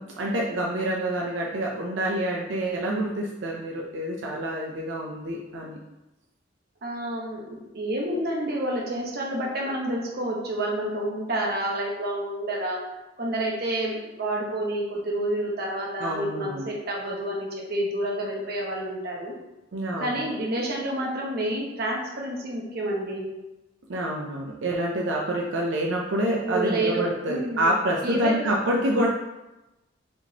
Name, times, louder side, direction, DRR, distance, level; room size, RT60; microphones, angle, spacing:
voice 1, 0.0-5.8 16.0-16.7 19.7-20.2 23.9-29.1, right 1 dB, 85° right, -2 dB, 0.6 m, -27 dB
voice 2, 6.8-12.8 13.2-19.3 20.0-23.3 26.4-27.7 28.0-28.5, right 1 dB, 55° right, -2 dB, 0.9 m, -29 dB
4.8 x 3.6 x 2.8 m, 0.98 s
head